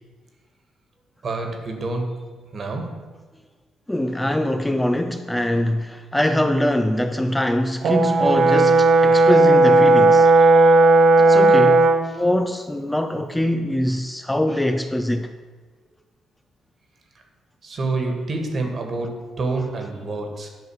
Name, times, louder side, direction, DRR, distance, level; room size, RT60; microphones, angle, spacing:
voice 1, 1.2-2.3 2.5-3.1 10.4-10.7 17.6-20.5, right 3 dB, 45° right, 1.8 m, -28 dB
voice 2, 3.9-10.3 11.3-15.3, left 1 dB, 10° left, 0.5 m, -23 dB
Brass instrument, 7.8-12.1, right 2 dB, 70° right, 0.8 m, -14 dB
10.5 x 3.9 x 7.2 m
cardioid pair, 90°, 0 cm